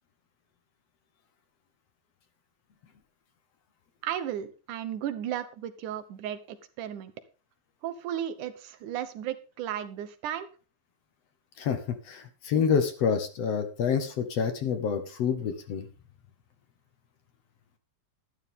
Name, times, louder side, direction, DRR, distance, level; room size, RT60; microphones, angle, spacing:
voice 1, 4.0-7.1 7.8-10.5, right 10 dB, 75° right, 10 dB, 2.4 m, -34 dB
voice 2, 12.1-15.9, left 6 dB, 60° left, 8 dB, 2.2 m, -27 dB
12.5 x 11.5 x 3.7 m, 0.35 s
omnidirectional pair, 3.7 m